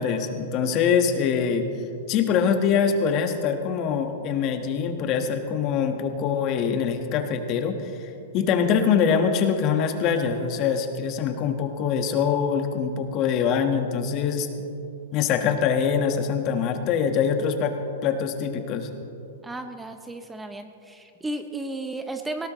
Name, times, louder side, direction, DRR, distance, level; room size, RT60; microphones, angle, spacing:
voice 1, 0.0-1.7 2.1-14.5 15.1-17.7 18.0-18.9, left 7 dB, 40° left, 6 dB, 1.4 m, -24 dB
voice 2, 19.4-22.5, right 2 dB, 10° right, 7 dB, 0.7 m, -34 dB
19.5 x 17.0 x 3.1 m, 2.7 s
hypercardioid pair, 130°, 0 cm